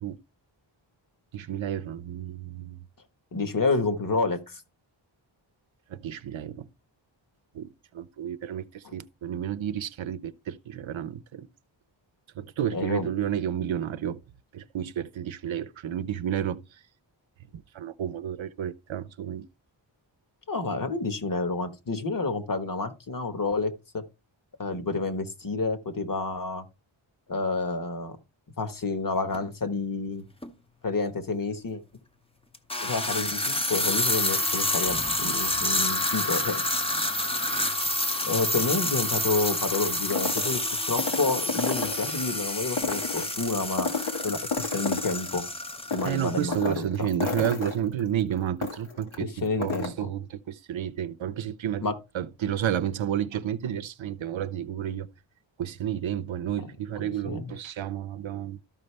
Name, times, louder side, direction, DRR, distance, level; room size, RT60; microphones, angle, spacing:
voice 1, 1.3-2.8 5.9-6.7 7.5-11.5 12.4-14.2 14.5-16.8 17.5-19.5 46.0-55.1 55.6-58.6, right 10 dB, 80° right, 0.7 m, -31 dB
voice 2, 3.3-4.6 8.8-8.9 12.7-13.1 20.5-24.0 24.6-26.6 27.3-28.2 28.6-30.2 30.8-31.8 32.8-36.6 38.2-40.6 40.9-43.9 44.2-45.4 45.9-46.6 47.0-47.1 49.4-49.9 51.8-52.0 57.2-57.5, left 3 dB, 45° left, 1.3 m, -29 dB
sound 1, 29.3-29.4 30.4-30.5 32.5-46.7, left 1 dB, 10° left, 0.7 m, -29 dB
sound 2, 39.7-42.3 42.7-45.4 45.7-49.2 49.5-49.9, left 4 dB, 80° left, 2.0 m, -32 dB
13.0 x 5.3 x 3.3 m
wide cardioid pair, 145°, 47 cm